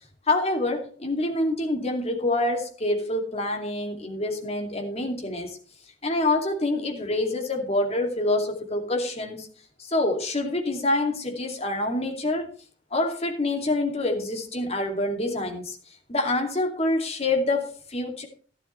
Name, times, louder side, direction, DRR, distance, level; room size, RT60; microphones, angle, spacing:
voice 1, 0.3-5.6 6.0-9.5 9.8-12.5 12.9-15.8 16.1-18.3, left 2 dB, 30° left, 3 dB, 2.6 m, -26 dB
13.0 x 11.5 x 3.2 m, 0.40 s
head